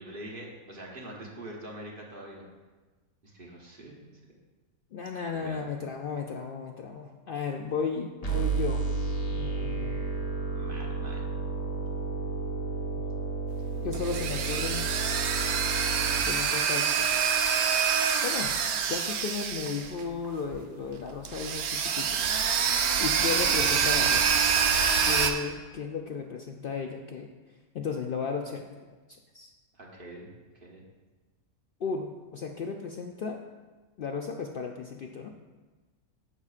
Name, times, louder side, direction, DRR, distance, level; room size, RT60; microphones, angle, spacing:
voice 1, 0.0-2.5 3.2-4.0 5.3-5.6 10.5-11.2 29.7-30.3 30.6-30.8, right 1 dB, 40° right, -2 dB, 1.3 m, -44 dB
voice 2, 4.9-8.8 9.3-10.0 13.8-14.9 16.3-17.1 18.2-18.5 18.9-22.2 23.0-24.3 25.0-27.3 27.7-28.9 29.3-29.5 31.8-33.4 34.0-35.3, left 5 dB, 75° left, 3 dB, 0.5 m, -34 dB
sound 1, 8.2-16.2, right 4 dB, 30° left, 1.0 m, -32 dB
sound 2, 13.6-20.3 20.5-20.6 21.2-25.3, right 7 dB, 85° right, 1.1 m, -26 dB
9.9 x 7.3 x 2.4 m, 1.3 s
omnidirectional pair, 1.5 m